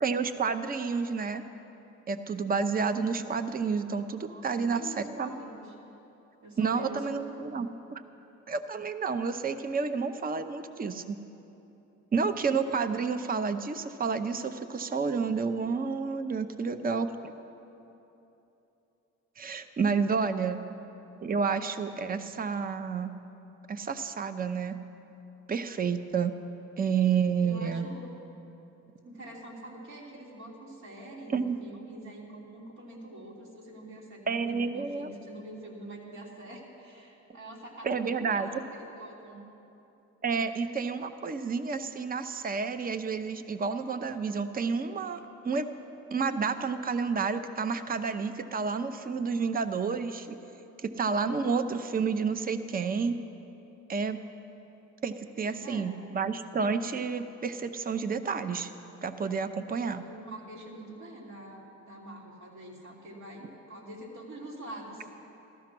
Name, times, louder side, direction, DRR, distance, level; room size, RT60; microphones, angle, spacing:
voice 1, 0.0-1.4 2.1-5.3 6.6-8.0 8.5-11.2 12.1-17.3 19.4-20.6 21.2-23.1 23.7-24.8 25.5-26.4 26.8-27.9 31.3-31.6 34.3-35.1 37.8-38.5 40.2-45.7 46.1-50.4 50.8-53.2 53.9-54.2 55.0-58.7 59.0-60.0, right 5 dB, 30° right, 10 dB, 0.7 m, -30 dB
voice 2, 4.3-5.7 6.4-7.2 20.2-20.4 27.4-28.1 29.0-39.4 55.4-56.0 59.6-65.1, right 1 dB, 75° right, -3 dB, 3.5 m, -45 dB
14.5 x 13.0 x 6.1 m, 3.0 s
cardioid pair, 90°, 30 cm